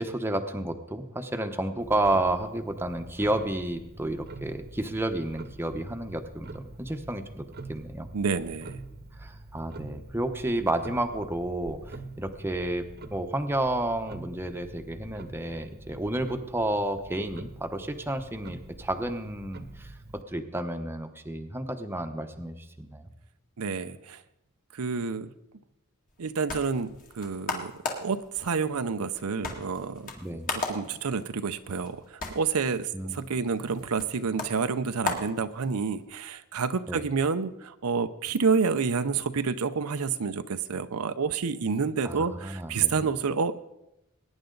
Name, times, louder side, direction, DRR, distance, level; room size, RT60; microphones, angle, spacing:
voice 1, 0.0-8.1 9.2-12.8 13.1-23.1 30.2-30.5 32.9-33.2 36.9-37.0 42.0-43.1, right 1 dB, 10° right, 5 dB, 0.9 m, -31 dB
Clock, 1.8-20.2, right 2 dB, 45° right, 1.0 m, -45 dB
voice 2, 8.1-8.8 23.6-24.2 24.7-25.3 26.2-27.7 28.0-30.1 30.7-43.5, right 5 dB, 80° right, 10 dB, 0.6 m, -29 dB
sound 1, 26.1-36.0, left 3 dB, 40° left, 2.0 m, -38 dB
21.0 x 9.9 x 3.9 m, 0.89 s
head